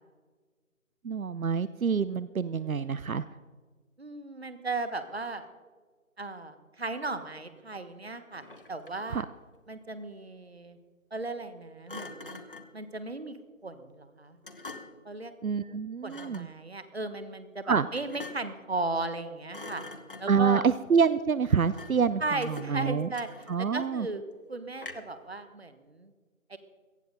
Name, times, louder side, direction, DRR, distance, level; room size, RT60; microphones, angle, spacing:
voice 1, 1.0-3.2 9.1-9.2 15.4-16.5 17.7-17.9 20.3-23.1 23.5-24.1, right 6 dB, 80° right, 16 dB, 0.6 m, -27 dB
voice 2, 4.0-5.5 6.2-9.2 9.7-10.8 11.1-12.4 12.7-13.4 13.6-14.4 15.0-15.3 16.0-19.8 20.2-20.6 22.2-23.3 23.6-26.1 26.5-26.6, right 3 dB, 50° right, 11 dB, 1.4 m, -36 dB
Thump thud, 8.3-9.1 11.9-12.8 14.4-15.1 16.1-16.5 17.9-18.6 19.0-19.2 19.5-20.5 21.7-22.1 22.4-23.8 24.8-25.2, left 2 dB, 40° left, 1.1 m, -45 dB
18.0 x 13.0 x 4.0 m, 1.5 s
figure-of-eight pair, 165°, 42 cm